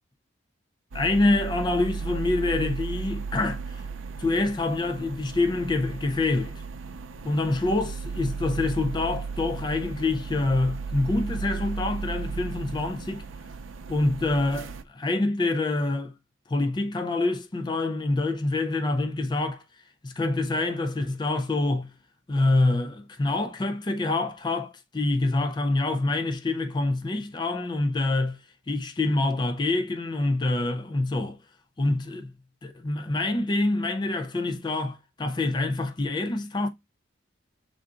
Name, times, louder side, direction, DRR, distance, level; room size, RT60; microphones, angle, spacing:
voice 1, 0.9-3.8 4.2-6.6 7.2-13.2 13.9-16.1 16.5-19.6 20.0-21.9 22.3-31.4 31.8-32.3 32.6-36.7, left 2 dB, 20° left, 0.4 m, -26 dB
sound 1, 0.9-14.8, right 5 dB, 80° right, 0.5 m, -35 dB
5.6 x 3.7 x 2.4 m
head